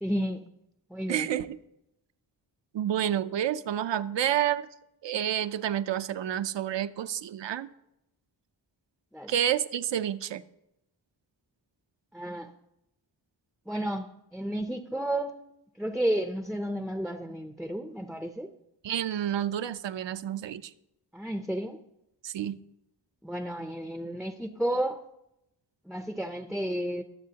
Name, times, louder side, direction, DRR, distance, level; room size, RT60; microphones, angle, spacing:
voice 1, 0.0-0.4 0.9-1.3 9.1-9.3 12.1-12.5 13.7-15.4 15.8-18.5 21.1-21.8 23.2-25.0 25.9-27.0, right 1 dB, ahead, 7 dB, 0.4 m, -32 dB
voice 2, 1.1-1.6 2.7-4.7 5.0-7.7 9.3-10.4 18.8-20.7 22.2-22.6, right 10 dB, 80° right, 12 dB, 0.6 m, -29 dB
21.5 x 7.7 x 2.8 m, 0.85 s
wide cardioid pair, 145°, 43 cm